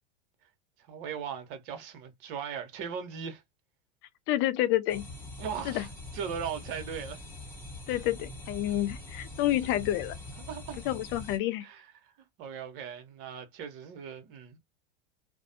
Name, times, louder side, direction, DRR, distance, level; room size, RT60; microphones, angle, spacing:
voice 1, 0.9-3.4 5.4-7.2 9.6-9.7 10.5-10.8 11.6-12.1 12.4-14.6, right 7 dB, 60° right, 1.1 m, -38 dB
voice 2, 4.3-5.1 5.6-5.8 7.9-10.2 10.9-11.6, left 14 dB, 40° left, 0.4 m, -29 dB
sound 1, 4.9-11.4, left 2 dB, 5° left, 1.0 m, -43 dB
2.5 x 2.1 x 2.6 m
hypercardioid pair, 110°, 30 cm